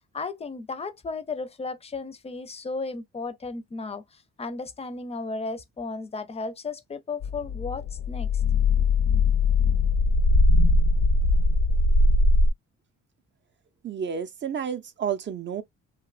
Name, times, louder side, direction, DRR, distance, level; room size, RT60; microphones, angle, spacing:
voice 1, 0.1-8.3, left 3 dB, 20° left, 0.5 m, -34 dB
sound 1, 7.2-12.5, left 2 dB, 60° left, 0.6 m, -21 dB
voice 2, 13.8-15.6, right 7 dB, 40° right, 0.4 m, -30 dB
2.9 x 2.2 x 2.3 m
cardioid pair, 90°, 30 cm